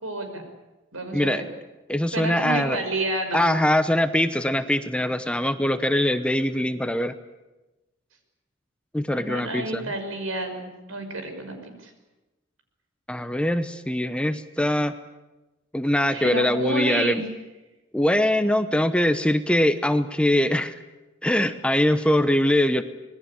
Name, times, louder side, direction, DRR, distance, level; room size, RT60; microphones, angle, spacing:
voice 1, 0.0-0.4 0.9-1.4 2.1-3.5 9.1-11.9 16.1-17.3, right 2 dB, 90° right, 6 dB, 5.9 m, -30 dB
voice 2, 1.1-1.4 1.9-2.8 3.3-7.2 8.9-9.8 13.1-14.9 15.7-17.2 17.9-20.8 21.2-22.8, left 1 dB, 5° left, 10 dB, 0.9 m, -22 dB
25.5 x 20.5 x 8.7 m, 1.1 s
head